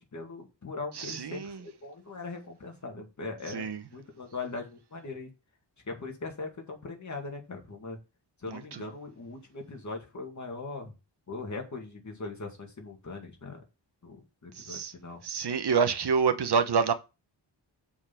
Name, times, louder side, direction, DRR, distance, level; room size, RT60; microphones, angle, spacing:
voice 1, 0.0-5.3 5.9-8.0 8.4-10.9 11.3-13.6 14.0-15.2, left 3 dB, 40° left, 2.2 m, -40 dB
voice 2, 1.0-1.6 3.5-3.8 8.5-8.8 14.6-14.9 15.2-16.9, right 6 dB, 60° right, 1.1 m, -27 dB
7.0 x 4.4 x 5.8 m
wide cardioid pair, 145°, 44 cm